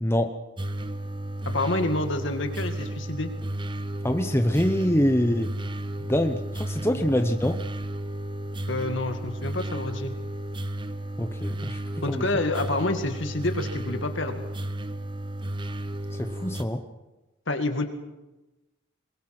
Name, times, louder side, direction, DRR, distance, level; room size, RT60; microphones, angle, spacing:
voice 1, 0.0-0.3 4.0-5.5 6.0-7.6 11.2-11.8 12.1-12.3 16.1-16.8, equal, 10° left, 7 dB, 0.9 m, -25 dB
sound 1, 0.6-16.6, right 1 dB, 25° right, 0.9 m, -33 dB
voice 2, 1.5-3.3 6.9-7.0 8.7-10.1 12.0-14.4 17.5-17.8, left 2 dB, 60° left, 6 dB, 2.2 m, -28 dB
22.5 x 22.0 x 6.1 m, 1.1 s
head